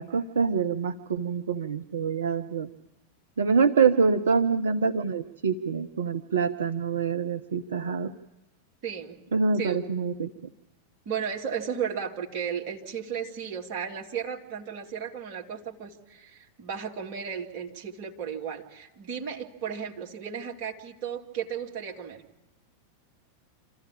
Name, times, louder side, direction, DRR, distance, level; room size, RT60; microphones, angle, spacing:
voice 1, 0.0-2.7 3.4-8.1 9.3-10.3, right 5 dB, 65° right, 7 dB, 0.7 m, -25 dB
voice 2, 8.8-9.2 9.6-9.8 11.1-22.2, right 7 dB, 45° right, 0 dB, 2.3 m, -34 dB
26.5 x 14.5 x 8.7 m, 1.0 s
figure-of-eight pair, 90°, 0 cm